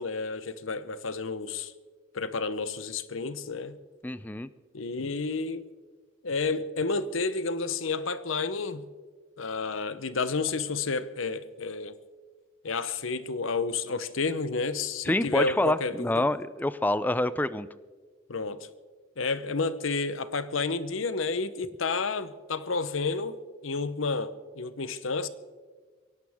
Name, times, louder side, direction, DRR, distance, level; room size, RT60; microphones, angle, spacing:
voice 1, 0.0-1.7 2.1-3.8 4.7-5.6 6.2-8.9 9.4-12.0 12.6-16.2 18.3-18.7 19.2-23.4 23.6-25.3, left 4 dB, 75° left, 0.9 m, -30 dB
voice 2, 4.0-4.5 15.0-17.7, left 1 dB, 10° left, 0.5 m, -27 dB
22.5 x 17.5 x 3.6 m
head